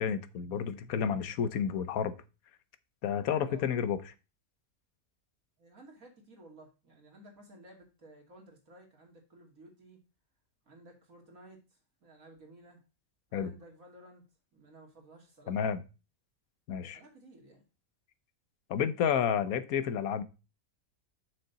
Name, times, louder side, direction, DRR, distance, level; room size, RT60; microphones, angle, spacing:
voice 1, 0.0-2.1 3.0-4.0 13.3-13.5 15.5-15.8 16.7-17.0 18.7-20.2, left 8 dB, 85° left, 13 dB, 1.3 m, -30 dB
voice 2, 5.6-10.0 10.7-12.8 13.3-14.3 14.5-15.7 16.9-17.6, right 1 dB, 75° right, 1 dB, 3.0 m, -55 dB
6.8 x 6.5 x 4.0 m, 0.30 s
omnidirectional pair, 1.5 m